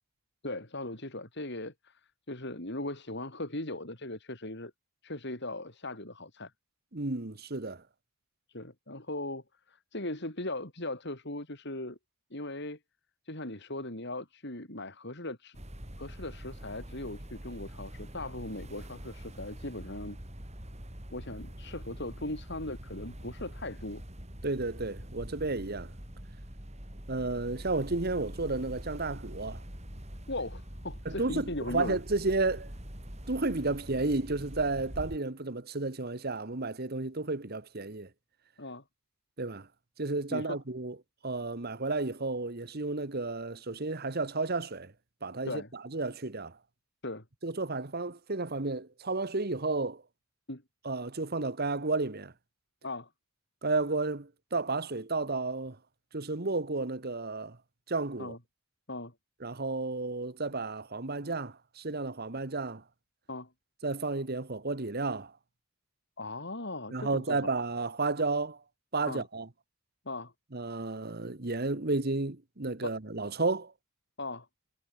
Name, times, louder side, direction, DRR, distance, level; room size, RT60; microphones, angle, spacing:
voice 1, 0.4-2.0 2.3-4.7 5.0-6.5 8.5-12.0 12.3-12.8 13.2-15.6 16.0-20.2 21.1-24.0 30.3-32.0 38.6-38.8 40.3-40.6 45.4-45.7 47.0-47.2 50.5-50.6 52.8-53.1 58.2-58.4 58.9-59.1 63.3-63.5 66.2-67.5 69.1-69.2 70.0-70.3 74.2-74.5, left 2 dB, 55° left, 6.8 m, -39 dB
voice 2, 6.9-7.8 24.4-25.9 27.1-29.6 31.0-32.7 33.3-38.1 39.4-39.7 40.0-41.0 41.2-44.9 45.2-46.6 47.4-50.0 50.8-52.3 53.6-55.8 56.1-57.6 57.9-58.3 59.4-62.8 63.8-65.3 66.9-68.6 68.9-69.5 70.5-73.7, right 3 dB, 50° right, 1.5 m, -32 dB
sound 1, 15.5-35.2, equal, 30° right, 4.7 m, -44 dB
head